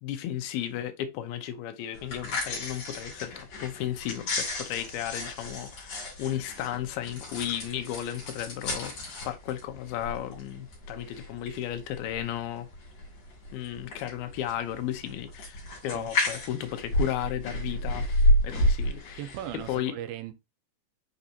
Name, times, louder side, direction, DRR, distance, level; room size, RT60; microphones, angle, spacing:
voice 1, 0.0-12.7 13.5-19.2 19.7-19.9, left 11 dB, 85° left, 2.7 m, -34 dB
sound 1, 1.9-19.8, left 1 dB, 45° left, 3.7 m, -31 dB
voice 2, 19.2-20.3, right 11 dB, 90° right, 2.5 m, -38 dB
6.6 x 5.1 x 2.8 m
omnidirectional pair, 4.3 m